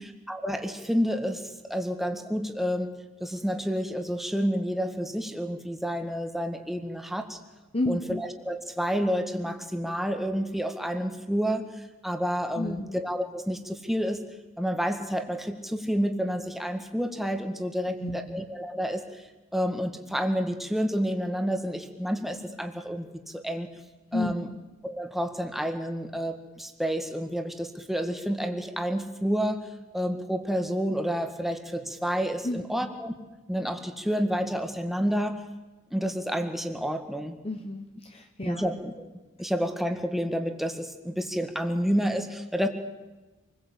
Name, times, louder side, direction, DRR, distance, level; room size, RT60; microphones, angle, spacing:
voice 1, 0.3-2.9 3.2-7.4 7.9-14.2 14.6-19.2 19.5-23.7 24.1-24.5 24.8-29.6 29.9-33.1 33.5-35.4 35.9-37.4 38.5-39.1 39.4-42.7, equal, ahead, 5 dB, 1.9 m, -29 dB
voice 2, 7.7-8.2 12.6-13.0 17.9-18.4 24.1-24.6 32.4-32.9 37.4-38.7, left 2 dB, 25° left, 5 dB, 1.2 m, -32 dB
27.0 x 21.0 x 8.4 m, 1.2 s
head